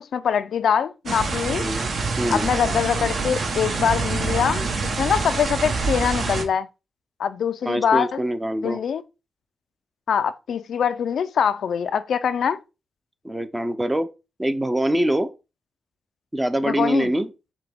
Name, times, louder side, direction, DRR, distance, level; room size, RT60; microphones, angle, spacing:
voice 1, 0.0-1.7 2.3-6.7 7.2-8.2 8.6-9.0 10.1-12.6 16.6-17.1, left 7 dB, 80° left, 0.3 m, -23 dB
sound 1, 1.1-6.4, right 4 dB, 65° right, 0.9 m, -26 dB
voice 2, 2.2-2.5 7.7-8.8 13.2-14.1 14.4-15.3 16.3-17.3, right 1 dB, 15° right, 0.5 m, -24 dB
5.7 x 2.2 x 3.4 m
cardioid pair, 100°, 0 cm